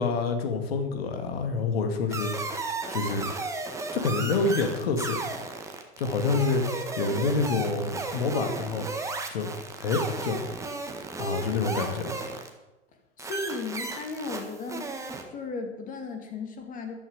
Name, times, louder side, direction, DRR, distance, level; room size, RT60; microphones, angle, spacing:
voice 1, 0.0-2.3 2.9-3.3 3.9-5.2 6.0-6.6 7.0-8.9 9.3-9.5 9.8-10.4 11.2-12.1, left 4 dB, 55° left, 6 dB, 2.5 m, -27 dB
sound 1, 2.1-12.5 13.2-15.2, right 3 dB, 10° right, 1.6 m, -34 dB
voice 2, 13.2-14.9 15.3-16.9, left 4 dB, 20° left, 4 dB, 2.5 m, -35 dB
13.5 x 12.0 x 5.0 m, 1.0 s
figure-of-eight pair, 100°, 37 cm